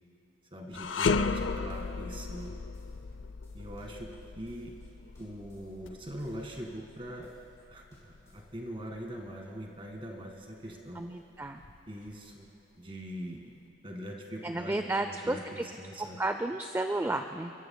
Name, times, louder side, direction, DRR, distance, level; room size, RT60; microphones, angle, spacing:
voice 1, 0.5-2.6 3.5-4.7 5.2-7.3 7.7-11.0 11.9-12.5 12.8-13.5 13.8-16.2, equal, 30° right, 1 dB, 1.8 m, -42 dB
sound 1, 0.7-10.0 10.4-10.6 11.4-12.3, left 4 dB, 85° left, 0.5 m, -35 dB
sound 2, 0.9-8.5, equal, 15° left, 3.4 m, -63 dB
voice 2, 10.9-11.6 14.4-15.7 16.2-17.5, right 2 dB, 15° right, 7 dB, 0.4 m, -32 dB
29.0 x 14.0 x 2.2 m, 2.9 s
head